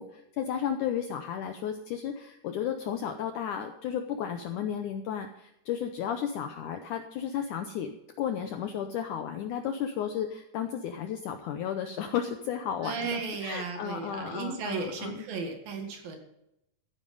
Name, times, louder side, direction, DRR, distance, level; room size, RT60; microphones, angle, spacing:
voice 1, 0.0-15.2, left 8 dB, 80° left, 6 dB, 1.8 m, -33 dB
voice 2, 12.8-16.2, right 4 dB, 65° right, 4 dB, 3.6 m, -35 dB
14.5 x 9.6 x 5.4 m, 0.80 s
omnidirectional pair, 4.5 m